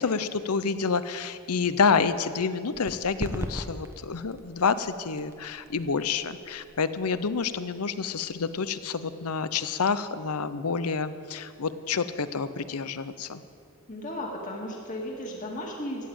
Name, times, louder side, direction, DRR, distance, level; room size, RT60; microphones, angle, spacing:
voice 1, 0.0-13.4, left 5 dB, 85° left, 13 dB, 0.7 m, -28 dB
sound 1, 2.7-10.1, equal, 10° right, 0.9 m, -41 dB
voice 2, 13.9-16.1, left 1 dB, 35° left, -1 dB, 2.1 m, -35 dB
14.0 x 9.4 x 8.7 m, 2.4 s
head